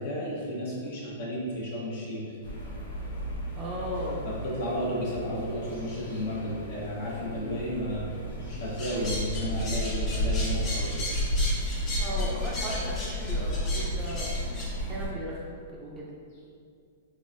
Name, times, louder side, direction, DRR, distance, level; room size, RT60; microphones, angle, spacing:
voice 1, 0.0-2.3 4.2-8.1 8.5-11.0, equal, 50° left, -5 dB, 1.1 m, -33 dB
sound 1, 2.4-15.1, equal, 90° left, 1.4 m, -32 dB
voice 2, 3.6-4.3 12.0-16.1, equal, 20° right, -4 dB, 0.5 m, -37 dB
sound 2, 8.8-14.7, left 1 dB, 25° left, 0.8 m, -36 dB
3.7 x 3.3 x 2.5 m, 2.2 s
hypercardioid pair, 155°, 0 cm